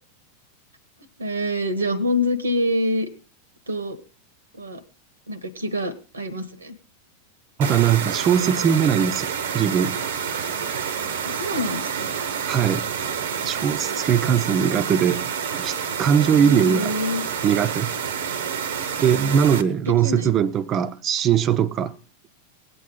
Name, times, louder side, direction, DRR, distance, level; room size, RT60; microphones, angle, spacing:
voice 1, 1.2-3.1 3.7-4.0 4.5-4.8 5.3-6.8 11.2-12.1 16.3-17.2 19.8-20.3, left 1 dB, 80° right, 1.2 m, -26 dB
voice 2, 7.6-9.3 9.5-10.0 12.5-12.9 13.5-16.9 17.4-17.9 19.0-22.0, right 8 dB, 30° right, 0.7 m, -20 dB
sound 1, 7.6-19.6, right 7 dB, 60° right, 0.9 m, -28 dB
19.5 x 8.4 x 3.8 m
figure-of-eight pair, 90°, 0 cm